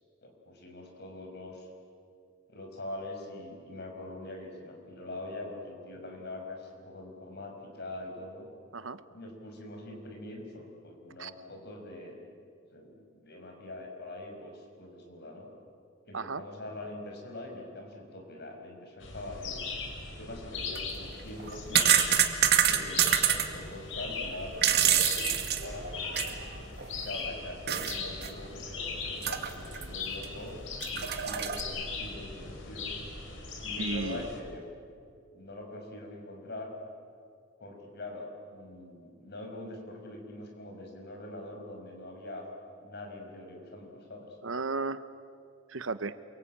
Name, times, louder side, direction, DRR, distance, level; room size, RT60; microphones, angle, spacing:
voice 1, 0.2-1.7 2.5-8.5 9.1-12.2 12.7-15.5 16.1-19.7 20.2-22.0 22.6-25.3 25.6-26.3 26.9-30.6 30.9-32.9 33.6-34.6 35.3-36.7 37.6-42.5 42.8-44.3, left 1 dB, 55° left, 2 dB, 5.6 m, -43 dB
sound 1, 19.0-34.4, left 4 dB, 75° left, 4.6 m, -39 dB
sound 2, 20.6-20.8 21.4-23.4 24.3-26.4 26.8-26.9 27.7-27.9 28.2-28.3 29.2-29.8 30.2-30.3 30.8-31.6, right 9 dB, 55° right, 2.0 m, -26 dB
voice 2, 33.8-34.2 44.4-45.1 45.7-46.2, right 3 dB, 85° right, 13 dB, 1.0 m, -34 dB
28.0 x 23.5 x 8.9 m, 2.3 s
head